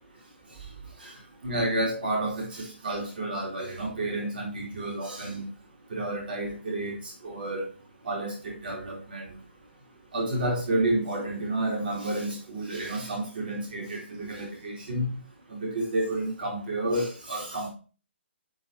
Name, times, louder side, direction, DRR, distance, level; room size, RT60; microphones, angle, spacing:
voice 1, 1.0-5.5 5.9-7.7 8.0-9.3 10.1-15.2 15.5-17.7, right 1 dB, 55° right, -1 dB, 2.6 m, -30 dB
10.5 x 3.5 x 4.1 m, 0.35 s
figure-of-eight pair, 135°, 6 cm